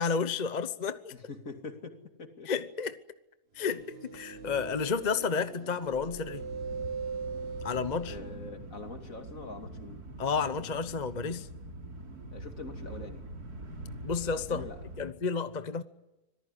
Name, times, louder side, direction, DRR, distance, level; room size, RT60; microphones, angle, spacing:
voice 1, 0.0-1.1 2.5-3.0 3.5-6.4 7.6-8.1 10.2-11.5 14.0-14.6 15.0-15.8, left 5 dB, 35° left, 0.9 m, -31 dB
voice 2, 1.1-2.5 8.1-10.0 12.3-13.3 14.5-14.8, left 3 dB, 60° left, 2.9 m, -44 dB
sound 1, 3.6-8.3, right 5 dB, 45° right, 1.2 m, -40 dB
sound 2, 6.3-15.1, right 1 dB, 90° right, 3.3 m, -44 dB
25.5 x 18.5 x 9.8 m
omnidirectional pair, 1.6 m